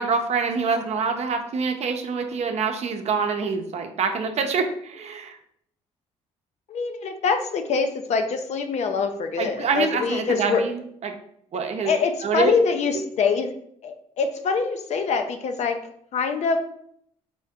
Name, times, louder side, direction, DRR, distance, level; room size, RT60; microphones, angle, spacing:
voice 1, 0.0-5.4 9.4-11.1 11.5-11.9 12.2-12.5, right 5 dB, 55° right, 5 dB, 0.7 m, -26 dB
voice 2, 6.7-10.6 11.8-13.5 13.8-15.8 16.1-16.6, left 5 dB, 55° left, 6 dB, 0.6 m, -24 dB
4.5 x 2.7 x 3.5 m, 0.69 s
supercardioid pair, 80°, 13 cm